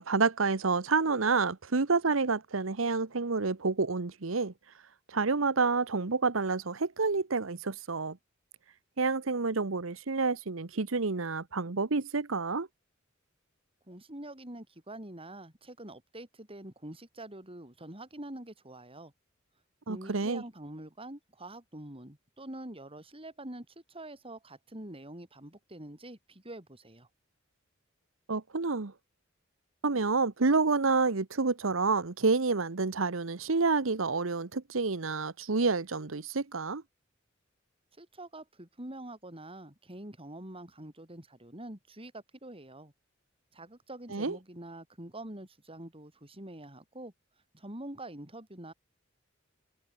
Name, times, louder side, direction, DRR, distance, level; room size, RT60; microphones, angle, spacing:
voice 1, 0.0-4.5 5.1-8.2 9.0-12.7 19.9-20.4 28.3-28.9 29.8-36.8 44.1-44.4, right 4 dB, 85° right, 1.1 m, -29 dB
voice 2, 13.9-19.1 19.9-27.1 38.0-42.9 43.5-47.1 47.5-48.7, right 1 dB, 30° right, 5.9 m, -45 dB
head